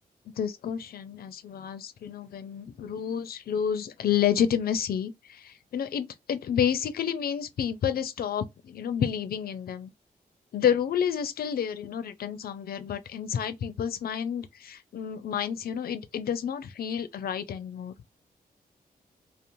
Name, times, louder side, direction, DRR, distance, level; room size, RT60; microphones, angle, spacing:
voice 1, 0.4-9.9 10.5-17.9, left 8 dB, 70° left, 0.5 m, -30 dB
2.6 x 2.0 x 2.9 m
cardioid pair, 95°, 16 cm